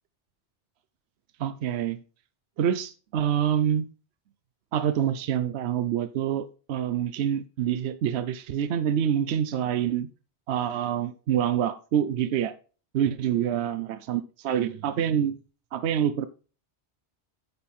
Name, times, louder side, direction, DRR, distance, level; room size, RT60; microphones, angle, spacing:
voice 1, 1.4-2.0 2.6-3.9 4.7-10.1 10.5-12.5 12.9-15.3 15.7-16.3, right 9 dB, 75° right, 0.9 m, -26 dB
9.7 x 5.4 x 4.3 m
omnidirectional pair, 1.1 m